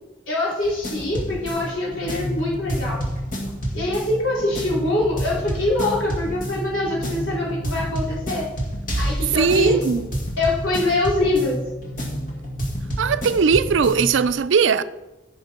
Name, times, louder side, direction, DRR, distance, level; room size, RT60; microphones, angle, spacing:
voice 1, 0.3-3.0 3.7-8.5 9.0-9.8 10.4-11.6, left 2 dB, 85° left, 3.5 m, -24 dB
Unpretentious Reveal, 0.6-14.3, equal, 45° left, 2.1 m, -29 dB
voice 2, 9.4-10.1 13.0-14.8, right 5 dB, 75° right, 0.4 m, -19 dB
15.0 x 5.3 x 4.3 m
head